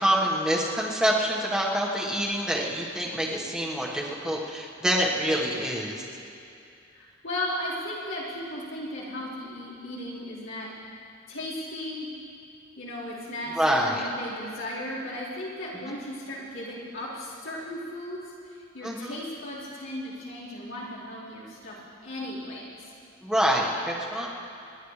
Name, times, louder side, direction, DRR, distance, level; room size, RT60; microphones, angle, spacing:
voice 1, 0.0-6.0 13.5-14.0 18.8-19.2 23.2-24.3, equal, 5° right, -4 dB, 1.4 m, -26 dB
voice 2, 6.9-10.7 11.3-12.1 12.8-21.8 22.0-22.7, left 1 dB, 80° left, -8 dB, 4.3 m, -36 dB
29.5 x 11.5 x 3.3 m, 2.6 s
head